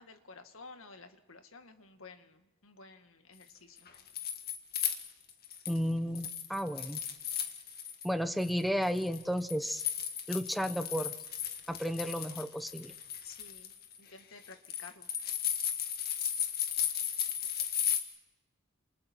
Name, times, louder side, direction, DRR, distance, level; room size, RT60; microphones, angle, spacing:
voice 1, 0.0-3.8 13.2-13.7 14.0-15.1, left 4 dB, 75° left, 7 dB, 1.9 m, -52 dB
sound 1, 3.8-5.8 6.2-8.1 8.4-18.0, left 9 dB, 50° left, 2.0 m, -35 dB
voice 2, 5.7-7.0 8.0-9.8 10.3-11.1 11.7-12.9, equal, ahead, 9 dB, 0.8 m, -33 dB
29.5 x 28.0 x 4.6 m, 1.1 s
head